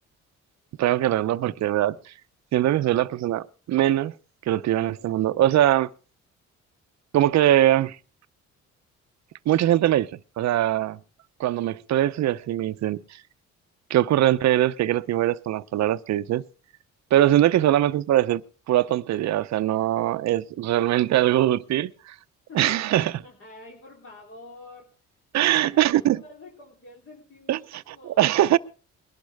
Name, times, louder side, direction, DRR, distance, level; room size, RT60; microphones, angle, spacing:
voice 1, 0.8-2.0 2.5-4.1 4.5-5.9 7.1-8.0 9.5-10.1 10.4-11.0 11.4-13.2 13.9-16.4 17.1-22.1 22.5-23.1 25.3-26.2 27.5-28.6, right 13 dB, 65° right, 0.7 m, -22 dB
voice 2, 22.5-24.9 25.4-25.8 26.3-28.3, left 3 dB, 45° left, 3.4 m, -47 dB
21.0 x 12.0 x 3.4 m
cardioid pair, 90°, 30 cm